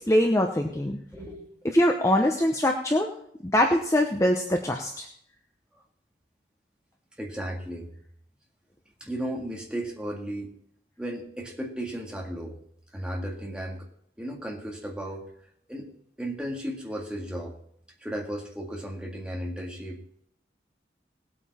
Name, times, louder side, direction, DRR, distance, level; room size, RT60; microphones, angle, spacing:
voice 1, 0.0-1.0 1.6-3.1 3.4-5.1, left 1 dB, 15° left, 3 dB, 0.8 m, -23 dB
voice 2, 1.1-1.5 7.2-7.9 9.0-10.5 11.0-12.6 12.9-13.9 14.2-15.2 15.7-15.9 16.2-17.5 18.0-20.0, right 1 dB, 5° right, -1 dB, 2.0 m, -35 dB
18.5 x 8.5 x 4.2 m, 0.66 s
head